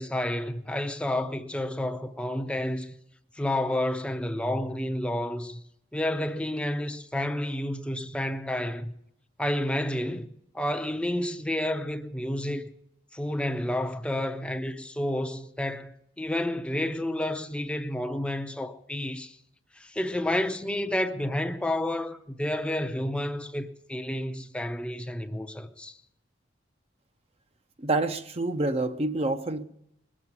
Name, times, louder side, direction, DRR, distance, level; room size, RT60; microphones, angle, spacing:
voice 1, 0.0-2.9 3.3-5.6 5.9-8.9 9.4-12.7 13.1-19.4 19.8-26.0, left 1 dB, 5° left, 0.7 m, -30 dB
voice 2, 27.8-29.6, right 2 dB, 35° right, 0.6 m, -27 dB
20.5 x 7.4 x 9.4 m
head